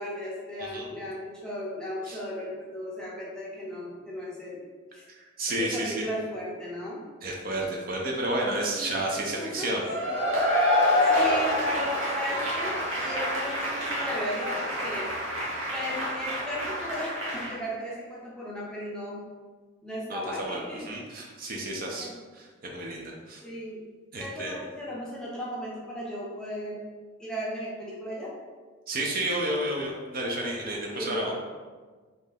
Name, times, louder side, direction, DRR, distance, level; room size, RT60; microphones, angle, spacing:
voice 1, 0.0-4.6 4.9-5.0 5.6-7.0 8.8-8.9 9.3-10.4 11.1-15.1 15.7-19.2 19.8-21.0 22.0-22.1 23.4-23.8 24.2-26.8 27.2-28.3 30.9-31.3, left 1 dB, 5° left, -6 dB, 0.5 m, -36 dB
voice 2, 5.1-6.1 7.2-9.8 20.1-22.1 22.3-23.4 24.1-24.5 28.9-31.3, right 1 dB, 45° right, -1 dB, 0.5 m, -31 dB
Cheering / Applause / Crowd, 9.9-17.5, left 1 dB, 70° right, 0.9 m, -27 dB
2.7 x 2.5 x 3.8 m, 1.4 s
head